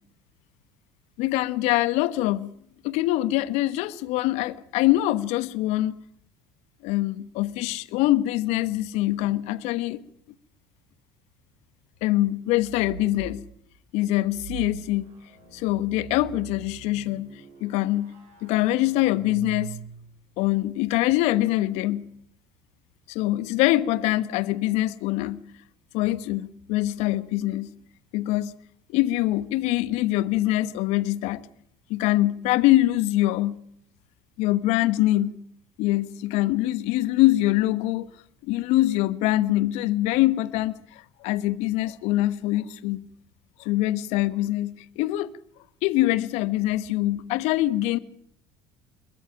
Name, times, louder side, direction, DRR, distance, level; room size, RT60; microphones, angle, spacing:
voice 1, 1.2-2.5 2.8-5.9 6.8-10.0 12.0-13.4 13.9-15.1 15.5-17.3 17.6-18.1 18.4-19.7 20.4-22.1 23.1-25.4 25.9-27.7 28.1-28.5 28.9-31.4 31.9-33.6 34.4-35.3 35.8-38.1 38.5-43.0 43.6-45.3 45.8-48.0, left 16 dB, 65° left, 1.2 m, -24 dB
sound 1, 12.5-13.4 14.3-20.3, right 7 dB, 60° right, 7.4 m, -42 dB
25.5 x 22.0 x 5.9 m
hypercardioid pair, 70°, 12 cm